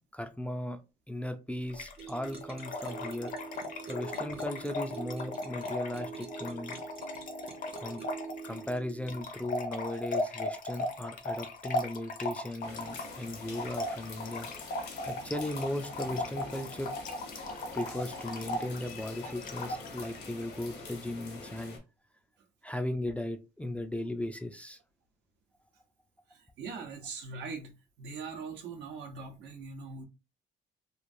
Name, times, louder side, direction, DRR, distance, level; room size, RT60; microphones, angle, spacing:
voice 1, 0.1-0.8 1.1-3.3 3.9-6.8 7.8-8.0 8.4-14.5 15.1-16.9 17.7-21.8 22.6-24.8, left 1 dB, 5° left, 0.3 m, -37 dB
Trickle dribble / Fill (with liquid), 1.7-20.2, left 2 dB, 50° left, 0.6 m, -37 dB
sound 1, 2.0-9.2, right 5 dB, 35° right, 0.6 m, -45 dB
sound 2, 12.6-21.8, left 3 dB, 80° left, 1.1 m, -46 dB
voice 2, 26.3-30.0, right 4 dB, 85° right, 0.8 m, -42 dB
3.1 x 2.3 x 2.5 m
cardioid pair, 110°, 17 cm